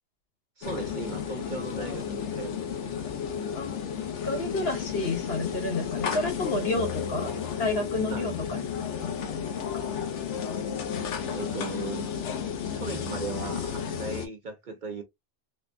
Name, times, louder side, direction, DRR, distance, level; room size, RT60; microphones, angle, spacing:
sound 1, 0.6-14.3, left 7 dB, 85° left, 1.0 m, -33 dB
voice 1, 0.6-3.1 8.1-8.3 11.3-12.1 12.7-15.0, right 4 dB, 55° right, 0.7 m, -38 dB
voice 2, 4.2-7.3 7.6-9.4 9.7-9.8, left 2 dB, 60° left, 1.2 m, -30 dB
4.1 x 2.1 x 2.5 m
omnidirectional pair, 1.2 m